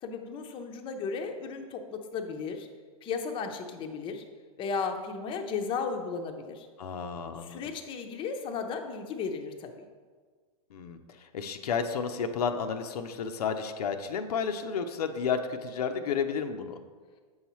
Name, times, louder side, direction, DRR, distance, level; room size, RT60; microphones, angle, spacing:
voice 1, 0.0-2.7 3.0-4.2 4.6-6.7 7.4-9.9, left 5 dB, 25° left, 4 dB, 0.6 m, -35 dB
voice 2, 6.8-7.6 10.7-16.8, left 6 dB, 80° left, 7 dB, 0.6 m, -32 dB
7.7 x 5.6 x 3.0 m, 1.5 s
hypercardioid pair, 125°, 20 cm